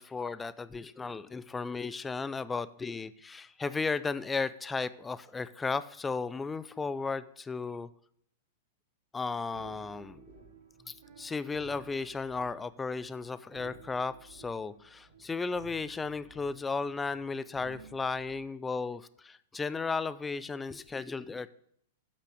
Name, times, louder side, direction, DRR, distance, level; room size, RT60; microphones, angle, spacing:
voice 1, 0.0-7.9 9.1-10.3 10.9-21.5, left 4 dB, 15° left, 16 dB, 0.4 m, -35 dB
sound 1, 9.3-18.4, right 5 dB, 80° right, 2.7 m, -55 dB
8.4 x 5.8 x 6.1 m, 0.68 s
hypercardioid pair, 115°, 0 cm